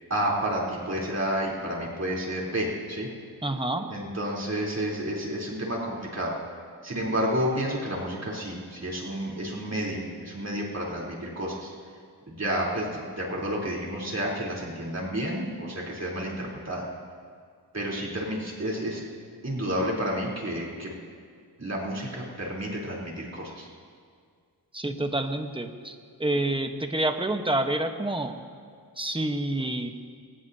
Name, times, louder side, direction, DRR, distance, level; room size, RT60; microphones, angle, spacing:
voice 1, 0.1-3.1 3.9-6.4 6.8-11.7 12.3-16.8 17.7-19.0 19.4-20.9 21.6-23.7, equal, 40° right, -4 dB, 3.8 m, -30 dB
voice 2, 3.4-3.9 24.7-28.4 29.0-29.9, right 1 dB, 15° right, 6 dB, 1.2 m, -28 dB
23.0 x 19.0 x 2.9 m, 2.1 s
cardioid pair, 75°, 40 cm